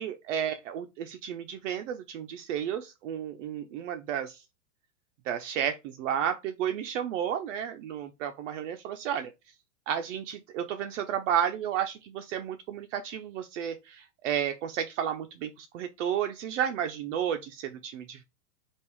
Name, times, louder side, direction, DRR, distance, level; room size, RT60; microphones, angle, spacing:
voice 1, 0.0-4.4 5.3-9.3 9.9-18.2, right 9 dB, 55° right, 0.6 m, -32 dB
3.6 x 2.5 x 4.5 m
hypercardioid pair, 125°, 46 cm